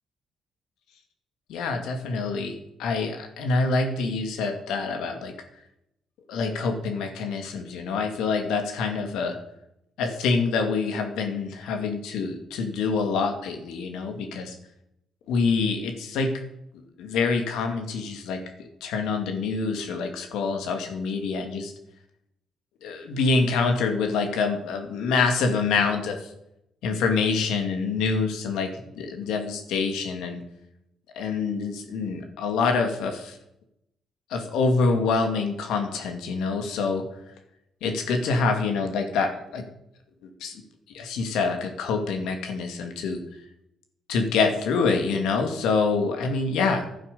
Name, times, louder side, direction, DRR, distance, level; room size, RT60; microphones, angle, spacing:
voice 1, 1.5-2.5 2.8-5.3 6.3-9.4 10.0-14.5 15.3-16.3 17.0-21.7 22.8-26.2 26.8-30.4 31.1-33.4 34.3-37.0 37.8-39.6 40.4-40.5 40.9-43.2 44.1-46.8, left 4 dB, 90° left, 5 dB, 2.3 m, -26 dB
12.0 x 9.2 x 6.9 m, 0.81 s
cardioid pair, 90°, 0 cm